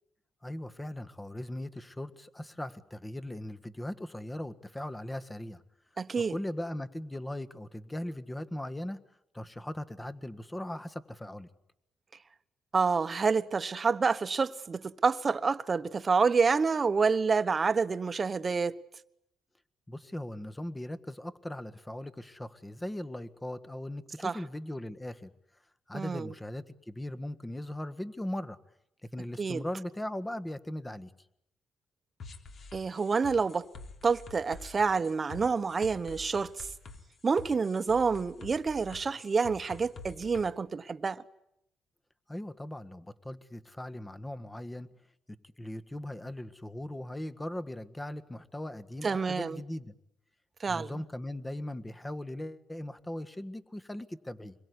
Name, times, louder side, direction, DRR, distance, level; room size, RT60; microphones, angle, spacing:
voice 1, 0.4-5.6 6.1-9.0 9.3-11.5 19.9-25.3 25.9-28.6 29.0-31.1 42.3-44.9 45.3-49.9 50.7-54.5, left 1 dB, 10° left, 1.6 m, -39 dB
voice 2, 6.0-6.3 12.7-18.8 24.2-24.4 25.9-26.3 29.4-29.6 32.7-33.7 34.0-36.7 37.2-41.2 49.0-49.6 50.6-50.9, right 5 dB, 35° right, 1.2 m, -28 dB
sound 1, 32.2-40.5, left 3 dB, 55° left, 3.6 m, -48 dB
26.5 x 22.0 x 9.7 m
cardioid pair, 90°, 0 cm